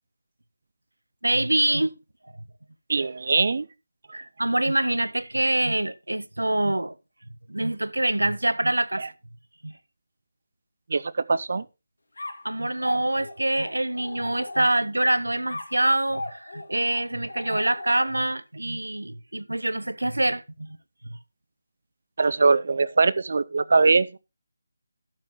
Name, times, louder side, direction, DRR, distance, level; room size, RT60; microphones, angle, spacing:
voice 1, 1.2-2.0 4.1-7.0 7.5-9.1 9.6-9.7 12.4-20.8, right 1 dB, 90° right, 0.9 m, -25 dB
voice 2, 2.9-3.7 9.0-9.1 10.9-11.6 22.2-24.1, right 4 dB, 55° right, 0.5 m, -21 dB
sound 1, 12.2-15.0 15.5-18.3, left 2 dB, 70° left, 2.2 m, -39 dB
12.0 x 7.5 x 3.0 m
figure-of-eight pair, 160°, 0 cm